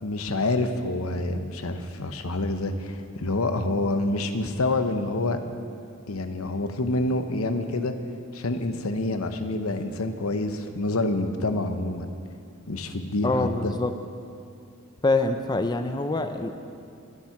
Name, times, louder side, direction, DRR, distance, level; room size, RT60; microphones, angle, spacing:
voice 1, 0.0-5.4 6.1-7.9 8.3-12.1 12.7-13.7, left 2 dB, 80° left, 8 dB, 0.9 m, -27 dB
voice 2, 13.2-13.9 15.0-16.5, left 2 dB, 20° left, 7 dB, 0.5 m, -25 dB
21.5 x 7.4 x 5.9 m, 2.5 s
head